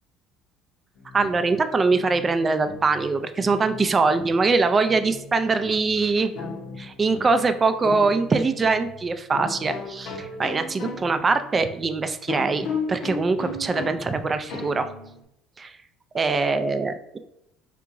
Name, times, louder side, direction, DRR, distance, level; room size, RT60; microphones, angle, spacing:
sound 1, 1.0-15.2, left 3 dB, 70° left, 0.7 m, -37 dB
voice 1, 1.1-6.4 6.8-14.9 15.6-15.8 16.1-17.2, right 4 dB, 30° right, 10 dB, 0.3 m, -23 dB
3.6 x 2.8 x 2.4 m, 0.79 s
supercardioid pair, 85°, 0 cm